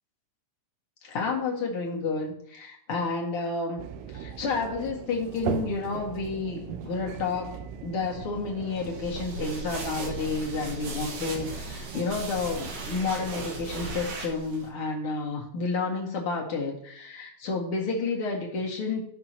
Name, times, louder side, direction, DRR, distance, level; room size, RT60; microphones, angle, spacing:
voice 1, 1.0-3.8 4.1-19.1, left 4 dB, 45° left, -1 dB, 2.2 m, -30 dB
sound 1, 3.8-14.2, right 9 dB, 80° right, 2.3 m, -39 dB
sound 2, 8.8-14.7, right 2 dB, 55° right, 2.5 m, -38 dB
15.0 x 5.9 x 4.5 m, 0.71 s
omnidirectional pair, 4.2 m